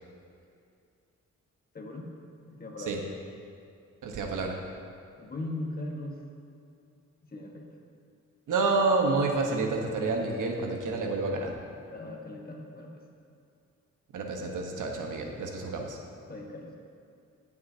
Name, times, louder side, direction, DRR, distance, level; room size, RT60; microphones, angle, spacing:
voice 1, 1.7-2.1 2.5-3.0 5.2-6.2 7.2-7.7 11.9-13.0 16.3-16.8, left 2 dB, 30° left, 0 dB, 1.3 m, -39 dB
voice 2, 4.0-4.6 8.5-11.5 14.1-16.0, right 3 dB, 90° right, 2 dB, 1.2 m, -29 dB
16.5 x 7.5 x 2.8 m, 2.4 s
wide cardioid pair, 120°, 30 cm